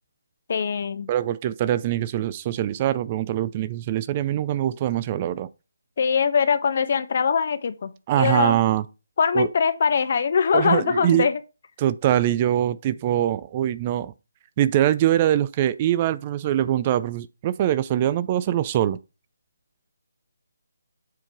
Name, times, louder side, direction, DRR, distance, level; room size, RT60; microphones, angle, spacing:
voice 1, 0.5-1.1 6.0-8.6 9.2-11.4, left 6 dB, 45° left, 0.8 m, -22 dB
voice 2, 1.1-5.5 8.1-8.8 9.3-9.5 10.5-11.3 11.8-14.1 14.6-19.0, right 12 dB, 30° right, 0.4 m, -23 dB
7.6 x 3.7 x 4.5 m
figure-of-eight pair, 150°, 0 cm